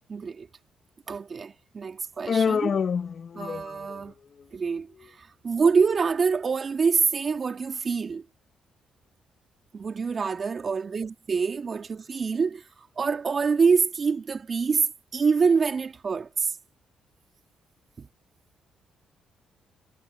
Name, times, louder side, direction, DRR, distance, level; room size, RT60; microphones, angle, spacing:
voice 1, 0.1-0.5 1.1-2.8 3.3-4.1 4.5-8.2 9.7-12.6 13.0-16.5 18.0-18.1, right 5 dB, 40° right, 3.1 m, -26 dB
Human voice, 2.3-4.0, left 6 dB, 50° left, 1.0 m, -26 dB
cardioid pair, 90°, 0 cm